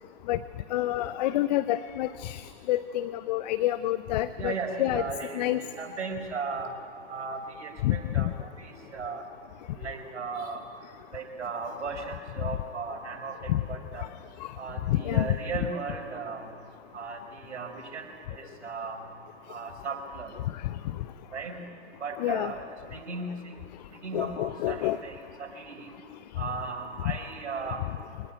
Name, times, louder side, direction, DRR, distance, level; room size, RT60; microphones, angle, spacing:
voice 1, 0.7-5.0 5.3-5.6 7.8-8.3 10.4-10.5 13.5-13.6 14.0-14.1 14.4-14.5 14.9-15.4 20.5-20.7 22.2-22.5 24.1-25.0, left 14 dB, 35° left, 15 dB, 0.6 m, -28 dB
voice 2, 4.4-6.7 7.1-9.2 9.7-10.6 11.1-14.1 14.6-16.5 16.9-19.0 19.5-20.3 21.3-21.6 22.0-23.5 23.9-25.9 26.4-27.8, right 4 dB, 70° right, 4 dB, 4.7 m, -36 dB
24.0 x 19.5 x 9.3 m, 2.2 s
figure-of-eight pair, 115°, 36 cm